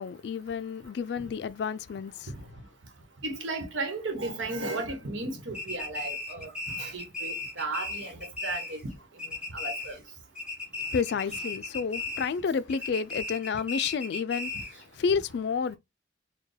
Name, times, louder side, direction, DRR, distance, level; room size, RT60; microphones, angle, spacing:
voice 1, 0.0-2.3 10.9-15.8, left 6 dB, 60° left, 0.3 m, -30 dB
voice 2, 3.2-8.8 9.5-10.0, right 2 dB, 90° right, 1.1 m, -35 dB
sound 1, 5.5-8.9 9.2-10.1 10.4-12.4 12.7-14.8, left 3 dB, 5° right, 1.7 m, -36 dB
4.3 x 2.2 x 3.2 m
head